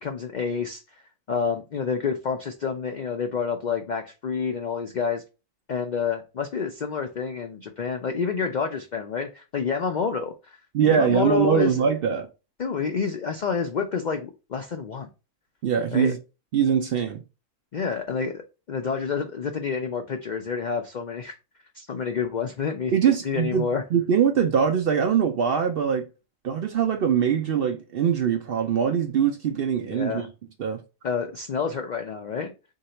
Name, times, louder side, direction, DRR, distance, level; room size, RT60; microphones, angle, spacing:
voice 1, 0.0-1.0 1.3-5.2 5.7-11.9 12.6-15.1 15.9-16.1 17.7-18.4 18.7-21.4 21.7-22.9 23.2-23.8 29.8-30.3 31.0-32.5, left 6 dB, 70° left, 0.4 m, -28 dB
voice 2, 10.7-12.3 15.6-16.2 16.5-17.2 22.9-26.1 26.4-30.3 30.6-30.8, right 8 dB, 60° right, 0.6 m, -22 dB
3.8 x 2.8 x 4.3 m
omnidirectional pair, 1.4 m